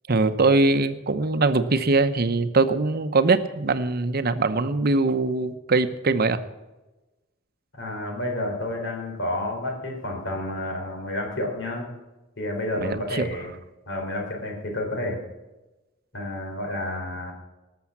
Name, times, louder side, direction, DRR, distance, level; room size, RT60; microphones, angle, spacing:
voice 1, 0.1-6.4 12.8-13.3, right 3 dB, 50° right, 10 dB, 0.9 m, -22 dB
voice 2, 7.7-11.9 12.4-13.5 13.9-15.2 16.1-17.3, left 1 dB, 65° left, 2 dB, 4.2 m, -30 dB
19.0 x 7.1 x 7.3 m, 1.1 s
head